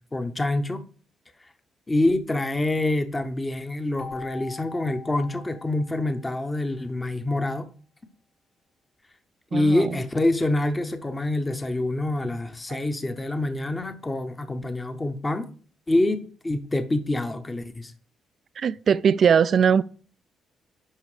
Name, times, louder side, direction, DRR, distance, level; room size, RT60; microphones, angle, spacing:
voice 1, 0.1-0.8 1.9-7.7 9.5-15.5 15.9-17.9, left 2 dB, 20° left, 0.8 m, -26 dB
Keyboard (musical), 4.0-6.6, left 5 dB, 40° left, 1.1 m, -42 dB
voice 2, 9.5-9.9 12.7-12.8 18.6-19.8, right 7 dB, 50° right, 0.3 m, -20 dB
11.5 x 4.4 x 4.9 m
cardioid pair, 130°, 0 cm